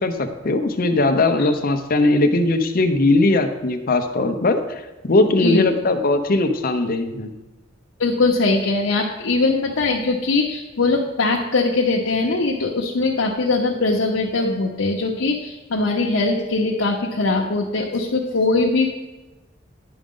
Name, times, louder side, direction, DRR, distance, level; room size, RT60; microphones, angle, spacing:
voice 1, 0.0-7.3, left 2 dB, 50° left, 7 dB, 0.7 m, -19 dB
voice 2, 8.0-18.9, left 3 dB, 90° left, -1 dB, 0.8 m, -21 dB
10.5 x 5.0 x 3.7 m, 1.1 s
head